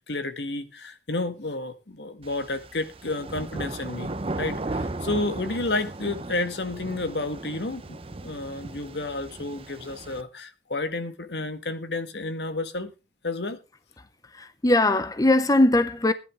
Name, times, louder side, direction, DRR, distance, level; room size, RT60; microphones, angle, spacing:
voice 1, 0.1-12.9 13.2-13.6, left 2 dB, 75° left, 1.7 m, -31 dB
sound 1, 2.2-10.2, right 2 dB, 35° right, 0.7 m, -36 dB
voice 2, 14.3-16.1, left 2 dB, 20° left, 0.6 m, -20 dB
15.5 x 10.5 x 3.7 m
head